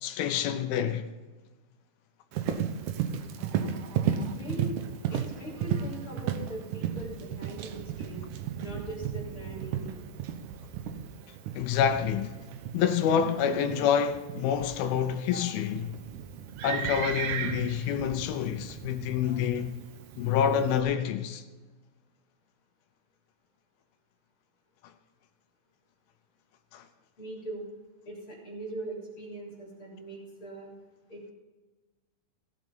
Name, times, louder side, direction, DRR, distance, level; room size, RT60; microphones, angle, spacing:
voice 1, 0.0-1.1 11.5-12.4 12.7-15.9 16.6-19.8 20.2-21.4 26.7-26.8, left 8 dB, 80° left, 2.5 m, -27 dB
Livestock farm animals working animals, 2.3-20.8, right 8 dB, 70° right, 2.0 m, -35 dB
voice 2, 4.1-4.8 5.1-8.2 8.6-10.1 15.3-15.4 27.2-27.7 28.0-30.7 31.1-31.2, right 1 dB, 35° left, 4.2 m, -41 dB
17.5 x 7.7 x 5.5 m
omnidirectional pair, 4.6 m